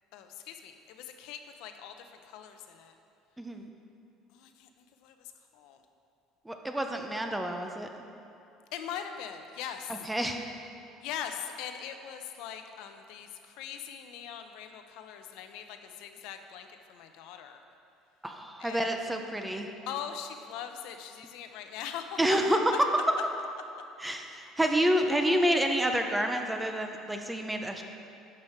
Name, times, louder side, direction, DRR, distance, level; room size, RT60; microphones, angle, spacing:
voice 1, 0.1-2.9 4.3-5.8 8.7-10.1 11.0-17.6 18.6-18.9 19.9-22.2 24.6-24.7, left 8 dB, 70° left, 6 dB, 0.7 m, -41 dB
voice 2, 3.4-3.7 6.5-7.9 10.1-10.5 18.2-19.7 22.2-22.6 24.0-27.8, equal, 5° right, 4 dB, 0.5 m, -28 dB
10.5 x 6.2 x 4.4 m, 2.6 s
cardioid pair, 155°, 0 cm